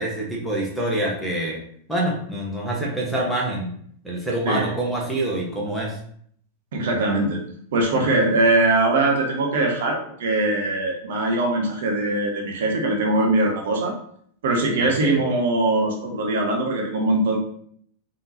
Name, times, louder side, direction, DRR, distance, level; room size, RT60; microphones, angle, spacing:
voice 1, 0.0-1.6 1.9-3.7 4.0-5.9 14.8-15.2, right 1 dB, ahead, -3 dB, 1.1 m, -26 dB
voice 2, 6.7-7.4 7.7-13.9 14.4-17.4, right 2 dB, 60° right, 1 dB, 0.7 m, -21 dB
3.6 x 2.7 x 2.7 m, 0.63 s
figure-of-eight pair, 90°, 0 cm